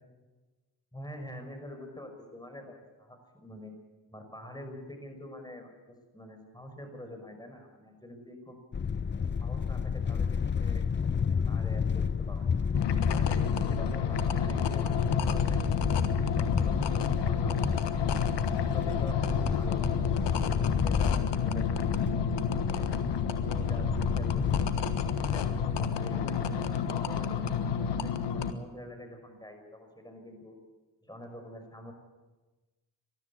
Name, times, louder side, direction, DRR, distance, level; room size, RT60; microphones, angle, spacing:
voice 1, 0.9-3.8 4.1-8.6 9.1-10.8 11.3-12.6 13.1-15.6 16.3-17.9 18.6-20.0 20.8-21.9 22.6-22.9 23.4-24.6 25.2-30.6 31.0-31.9, left 1 dB, 10° left, 5 dB, 5.8 m, -46 dB
sound 1, 8.7-25.9, left 6 dB, 25° left, 0.6 m, -30 dB
sound 2, 12.7-28.5, left 6 dB, 70° left, 1.4 m, -31 dB
21.0 x 13.5 x 9.8 m, 1.2 s
supercardioid pair, 40°, 43 cm